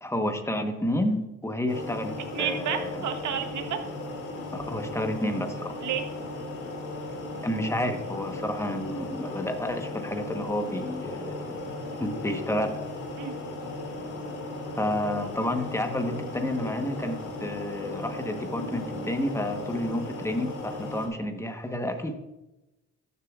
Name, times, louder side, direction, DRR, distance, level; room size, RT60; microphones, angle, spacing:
voice 1, 0.0-3.0 4.5-5.8 7.4-11.6 12.0-12.8 14.8-22.1, left 1 dB, 10° left, 5 dB, 1.2 m, -30 dB
sound 1, 1.7-21.1, left 2 dB, 80° left, 2.6 m, -36 dB
voice 2, 2.3-3.8 5.8-6.0 13.2-13.3, right 8 dB, 75° right, 7 dB, 1.1 m, -30 dB
14.0 x 6.9 x 2.5 m, 0.98 s
cardioid pair, 90°, 30 cm